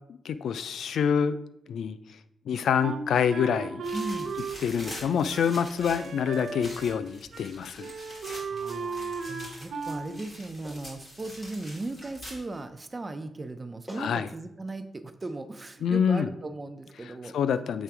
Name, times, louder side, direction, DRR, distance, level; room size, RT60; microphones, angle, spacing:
voice 1, 0.1-1.4 1.7-2.0 2.5-3.8 4.6-7.9 14.0-14.3 15.8-16.3 17.0-17.8, left 7 dB, 80° left, 13 dB, 0.3 m, -26 dB
Wind instrument woodwind instrument, 2.8-7.1 7.3-7.5 7.8-10.1, right 5 dB, 85° right, 0.7 m, -36 dB
sound 1, 3.8-12.6, equal, 30° left, 2.4 m, -45 dB
voice 2, 3.9-4.4 8.5-17.3, right 2 dB, 25° right, 9 dB, 0.5 m, -37 dB
Clapping, 10.6-10.9 12.0-12.2 13.4-13.5 13.9-14.1 15.2-15.3, equal, 15° left, 1.7 m, -45 dB
7.3 x 3.3 x 4.7 m, 0.81 s
wide cardioid pair, 145°, 0 cm